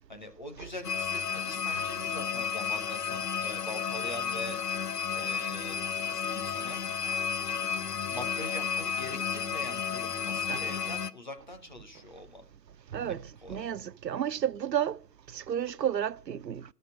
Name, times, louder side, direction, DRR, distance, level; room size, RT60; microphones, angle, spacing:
voice 1, 0.1-4.6 5.1-5.8 6.0-6.8 7.5-7.7 8.1-12.4 13.1-13.7, left 1 dB, 30° left, 0.8 m, -43 dB
sound 1, 0.8-11.1, left 6 dB, 75° left, 0.8 m, -32 dB
voice 2, 13.5-15.0 15.3-16.6, right 9 dB, 85° right, 0.6 m, -31 dB
11.0 x 6.5 x 7.3 m
figure-of-eight pair, 155°, 48 cm